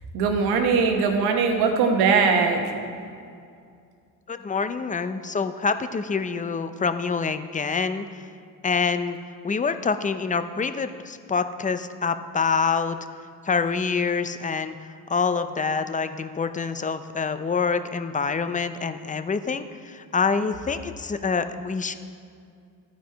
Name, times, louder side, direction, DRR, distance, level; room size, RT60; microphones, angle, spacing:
voice 1, 0.1-2.6, right 5 dB, 90° right, 4 dB, 1.1 m, -20 dB
voice 2, 4.3-8.1 8.6-9.2 9.4-13.0 13.5-14.8 15.1-22.0, left 5 dB, 20° left, 11 dB, 0.5 m, -26 dB
13.5 x 4.8 x 4.6 m, 2.3 s
cardioid pair, 80°, 37 cm